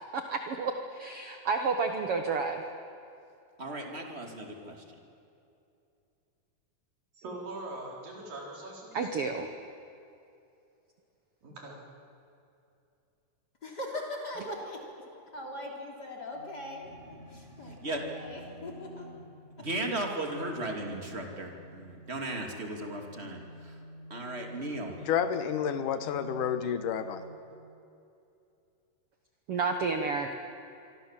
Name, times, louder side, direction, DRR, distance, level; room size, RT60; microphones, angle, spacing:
voice 1, 0.1-2.6 8.9-9.5 29.5-30.3, right 4 dB, 60° right, 5 dB, 1.7 m, -30 dB
voice 2, 3.6-4.8 17.8-18.0 19.6-23.7 24.1-24.9, right 1 dB, 20° right, 2 dB, 2.4 m, -36 dB
voice 3, 7.2-9.1 11.4-11.8, right 2 dB, 85° right, -1 dB, 5.9 m, -42 dB
voice 4, 13.6-19.1 19.6-19.7, left 1 dB, 30° left, 0 dB, 3.6 m, -41 dB
sound 1, 16.3-27.3, equal, 15° left, 6.6 m, -49 dB
voice 5, 25.1-27.2, left 8 dB, 75° left, 10 dB, 2.5 m, -30 dB
26.0 x 24.5 x 7.5 m, 2.7 s
omnidirectional pair, 3.8 m